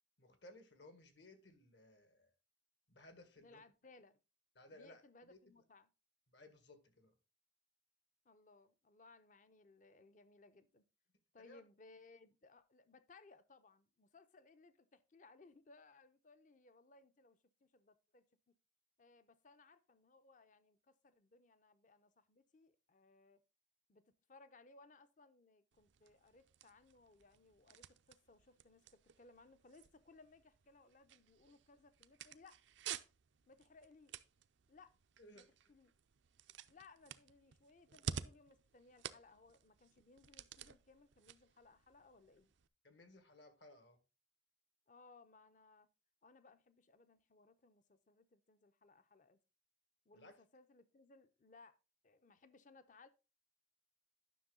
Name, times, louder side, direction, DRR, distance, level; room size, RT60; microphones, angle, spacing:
voice 1, 0.2-2.3 2.9-3.6 4.6-5.4 6.3-7.1 11.4-11.6 35.2-35.5 42.8-44.0 50.1-50.3, left 1 dB, 65° left, 1.6 m, -60 dB
voice 2, 3.4-4.2 4.7-5.9 8.2-10.8 11.3-18.3 19.0-23.4 23.9-32.6 33.5-34.2 34.7-35.0 35.3-35.9 36.7-42.5 44.9-45.9 46.2-49.4 50.1-51.8 52.0-53.1, left 3 dB, 40° left, 0.6 m, -64 dB
sound 1, 25.7-42.7, right 7 dB, 75° right, 0.5 m, -52 dB
10.0 x 6.2 x 3.8 m
head